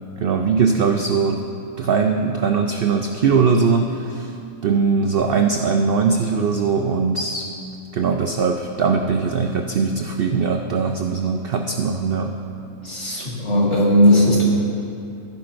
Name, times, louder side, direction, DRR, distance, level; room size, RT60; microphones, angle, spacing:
voice 1, 0.2-1.4 1.8-4.3 4.6-7.4 7.9-12.3 13.2-13.3, right 5 dB, 75° right, 3 dB, 0.5 m, -20 dB
voice 2, 12.8-14.4, equal, 50° left, -5 dB, 2.4 m, -17 dB
16.0 x 10.0 x 2.6 m, 2.6 s
omnidirectional pair, 1.6 m